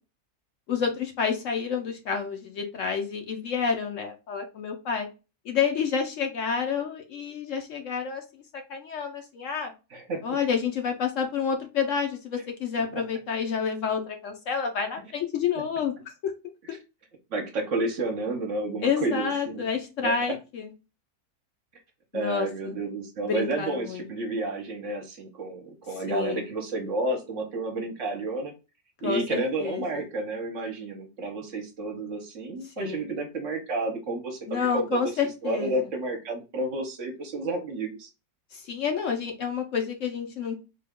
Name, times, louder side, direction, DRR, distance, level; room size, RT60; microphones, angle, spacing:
voice 1, 0.7-5.1 5.4-8.4 8.7-9.7 10.2-16.3 16.7-16.8 18.8-20.7 22.1-22.7 23.2-24.1 26.1-26.5 29.0-30.0 32.8-33.1 34.5-35.8 38.5-40.6, left 6 dB, 65° left, 5 dB, 0.9 m, -29 dB
voice 2, 9.9-10.2 17.3-19.7 20.0-20.1 22.1-28.5 29.0-35.1 35.4-38.1, right 2 dB, 60° right, 4 dB, 1.0 m, -31 dB
3.7 x 2.2 x 3.5 m, 0.29 s
omnidirectional pair, 1.6 m